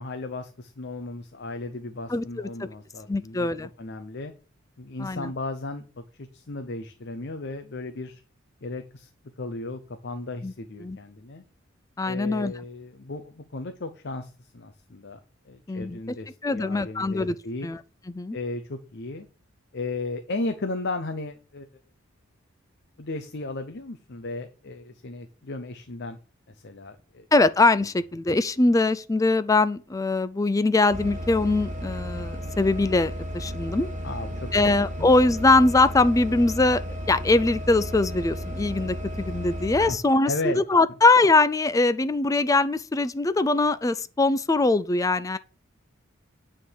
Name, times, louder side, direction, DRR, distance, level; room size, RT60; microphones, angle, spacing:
voice 1, 0.0-3.5 3.8-4.3 4.8-5.8 6.2-8.2 8.6-9.1 9.4-11.4 12.0-15.2 15.5-17.7 18.3-19.3 19.7-21.7 23.0-26.2 26.5-27.3 34.0-35.1 39.9-40.0 40.2-40.6, left 2 dB, 55° left, 0.7 m, -35 dB
voice 2, 2.1-2.7 3.1-3.7 5.0-5.3 10.4-10.5 10.8-11.0 12.0-12.5 15.7-16.0 16.4-17.3 17.6-17.8 18.1-18.4 27.3-33.9 34.5-36.8 37.1-45.4, left 2 dB, 15° left, 0.4 m, -22 dB
sound 1, 30.9-39.9, equal, 40° right, 1.2 m, -34 dB
9.2 x 3.8 x 6.3 m
head